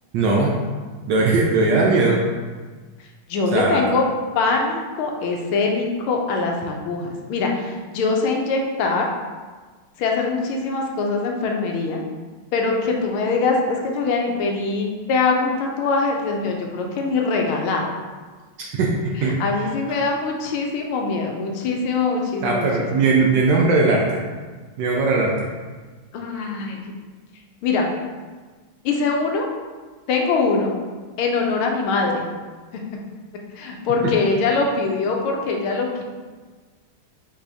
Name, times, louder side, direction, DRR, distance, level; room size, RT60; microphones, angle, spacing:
voice 1, 0.1-0.6 1.1-2.2 3.5-3.8 18.6-18.9 19.2-19.3 22.4-24.0 24.8-25.5, right 3 dB, 75° right, -2 dB, 1.1 m, -19 dB
voice 2, 3.3-4.0 4.3-9.1 10.0-12.0 12.5-17.9 19.2-23.0 26.1-26.9 27.6-27.9 28.8-29.5 30.1-30.7 31.2-32.2 32.7-32.8 33.5-36.0, left 4 dB, 80° left, 1 dB, 1.5 m, -23 dB
5.6 x 3.0 x 2.7 m, 1.4 s
omnidirectional pair, 2.3 m